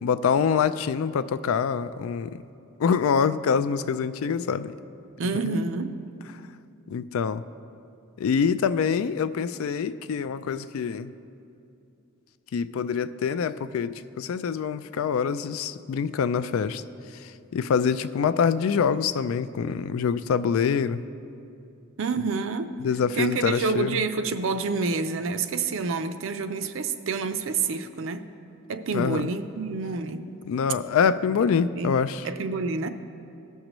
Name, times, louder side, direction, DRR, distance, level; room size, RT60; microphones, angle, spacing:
voice 1, 0.0-2.4 2.8-4.7 5.5-5.6 6.9-7.4 8.2-11.1 12.5-16.8 17.2-21.0 22.8-24.0 28.9-29.3 30.5-32.2, left 6 dB, 70° left, 14 dB, 0.3 m, -25 dB
voice 2, 5.2-6.0 22.0-22.7 23.1-28.2 28.7-30.2 31.7-32.0 32.2-32.9, right 4 dB, 60° right, 9 dB, 0.5 m, -28 dB
17.5 x 6.4 x 3.0 m, 2.7 s
head